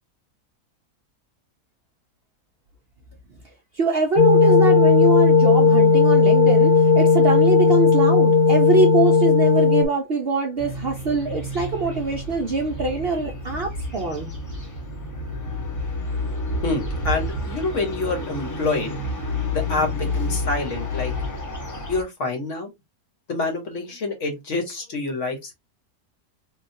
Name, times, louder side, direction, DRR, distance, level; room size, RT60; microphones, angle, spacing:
voice 1, 3.7-14.3, right 3 dB, 60° right, 0.7 m, -23 dB
sound 1, 4.2-9.9, left 4 dB, 75° left, 1.1 m, -15 dB
sound 2, 10.6-22.0, left 2 dB, 15° left, 0.7 m, -30 dB
voice 2, 16.6-19.0 19.5-21.1 21.9-22.7 23.3-25.5, left 3 dB, 60° left, 1.1 m, -27 dB
3.7 x 2.3 x 2.6 m
omnidirectional pair, 1.6 m